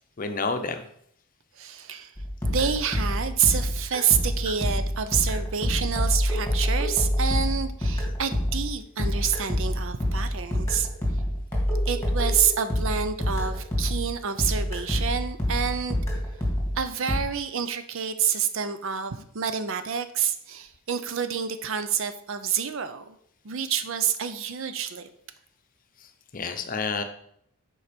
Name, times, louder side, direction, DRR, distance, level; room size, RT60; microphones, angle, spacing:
voice 1, 0.2-0.8 26.3-27.0, left 4 dB, 40° left, 7 dB, 0.7 m, -29 dB
voice 2, 1.6-2.1 2.4-10.9 11.9-16.0 16.8-23.2 23.4-25.1, right 7 dB, 60° right, 11 dB, 0.6 m, -28 dB
sound 1, 2.2-14.1 14.4-17.2, equal, 10° left, 2.2 m, -26 dB
7.0 x 4.7 x 5.1 m, 0.68 s
head